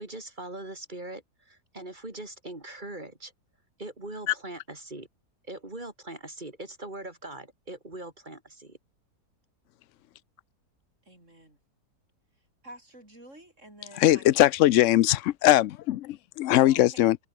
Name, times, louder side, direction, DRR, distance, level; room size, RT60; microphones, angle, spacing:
voice 1, 0.0-3.3 3.8-5.1 5.5-8.8, right 2 dB, 30° right, 3.5 m, -41 dB
voice 2, 11.0-11.6 12.6-14.4 16.6-17.1, right 1 dB, 45° right, 8.5 m, -48 dB
voice 3, 13.9-17.2, left 14 dB, 70° left, 0.7 m, -21 dB
omnidirectional pair, 1.7 m